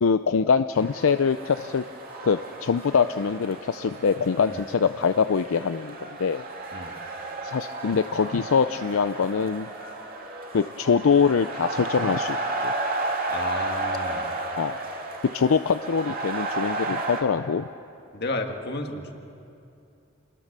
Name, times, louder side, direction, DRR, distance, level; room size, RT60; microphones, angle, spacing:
voice 1, 0.0-1.8 2.2-6.4 7.4-9.7 10.5-12.7 14.6-14.8 15.3-17.6, left 5 dB, 80° left, 10 dB, 0.5 m, -23 dB
sound 1, 0.7-17.2, right 2 dB, 45° right, 2.4 m, -33 dB
voice 2, 13.3-14.3 18.1-19.1, left 2 dB, 50° left, 4 dB, 1.9 m, -32 dB
27.5 x 20.5 x 6.7 m, 2.6 s
head